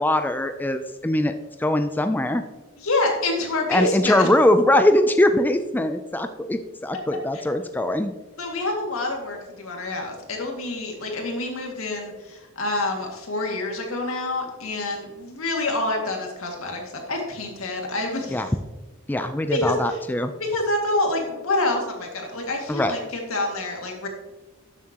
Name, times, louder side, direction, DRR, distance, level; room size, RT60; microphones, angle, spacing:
voice 1, 0.0-1.3 1.6-2.4 3.7-8.1 18.3-18.5 19.1-20.3 22.7-22.9, left 1 dB, 10° left, 8 dB, 0.4 m, -21 dB
voice 2, 2.8-4.3 7.3-7.4 8.4-18.5 19.5-20.0 20.4-24.1, left 2 dB, 80° left, 1 dB, 2.2 m, -27 dB
13.0 x 7.4 x 2.9 m, 1.2 s
head